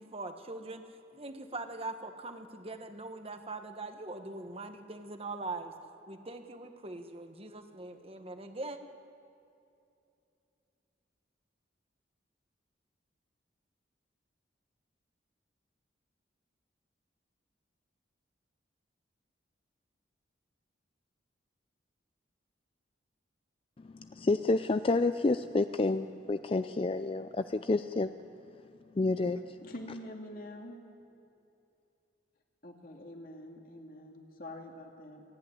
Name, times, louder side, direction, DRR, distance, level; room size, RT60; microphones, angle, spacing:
voice 1, 0.0-5.7 6.1-8.8, right 2 dB, 30° right, 7 dB, 1.3 m, -42 dB
voice 2, 23.9-28.1 29.0-29.4, left 3 dB, 30° left, 10 dB, 0.4 m, -29 dB
voice 3, 29.6-30.8 32.6-35.2, left 1 dB, 50° left, 2 dB, 2.4 m, -45 dB
27.0 x 10.5 x 9.9 m, 2.7 s
head